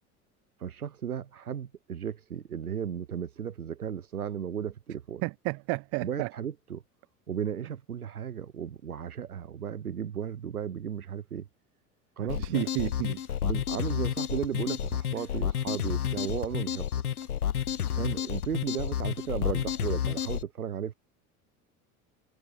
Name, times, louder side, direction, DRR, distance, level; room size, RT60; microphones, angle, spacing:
voice 1, 0.6-5.2 6.0-6.8 7.3-11.5 12.2-12.6 13.4-16.9 17.9-20.9, right 8 dB, 80° right, 1.0 m, -35 dB
voice 2, 5.2-6.3 12.2-13.4, right 36 dB, 35° right, 0.4 m, -32 dB
sound 1, 12.3-20.4, left 9 dB, 85° left, 0.6 m, -30 dB
figure-of-eight pair, 70°, 44 cm